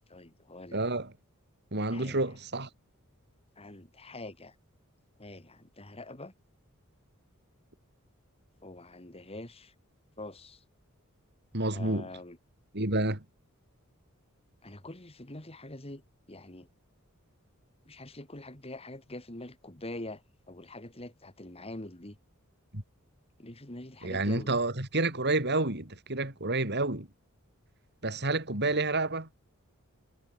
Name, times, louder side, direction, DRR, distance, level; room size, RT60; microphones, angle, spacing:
voice 1, 0.1-0.8 1.9-2.2 3.6-4.5 5.2-6.3 8.6-9.7 10.2-10.6 11.7-12.4 14.6-16.0 16.3-16.7 17.9-20.2 20.5-22.2 23.4-24.5 28.6-28.8, left 1 dB, 30° left, 3.2 m, -44 dB
voice 2, 0.7-1.1 1.7-2.7 11.5-12.1 12.7-13.2 22.7-22.8 24.0-27.1 28.0-29.3, right 2 dB, 50° right, 4.7 m, -29 dB
head